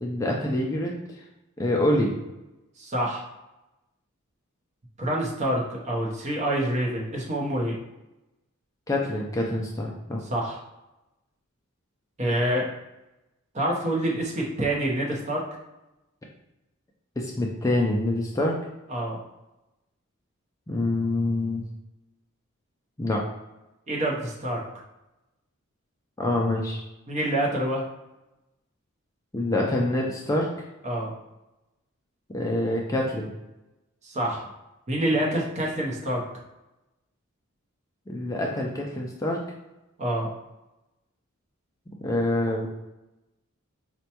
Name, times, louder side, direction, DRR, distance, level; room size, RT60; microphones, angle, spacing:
voice 1, 0.0-1.2 1.6-2.1 8.9-10.2 17.2-18.6 20.7-21.6 23.0-23.2 26.2-26.8 29.3-30.5 32.3-33.3 38.1-39.4 42.0-42.7, left 1 dB, 15° left, -1 dB, 0.3 m, -26 dB
voice 2, 2.8-3.2 5.0-7.8 10.3-10.6 12.2-12.6 13.5-15.4 18.9-19.2 23.9-24.6 27.1-27.9 30.8-31.1 34.0-34.4 34.9-36.2 40.0-40.3, right 1 dB, 35° right, -2 dB, 0.7 m, -26 dB
4.2 x 2.2 x 2.8 m, 0.98 s
head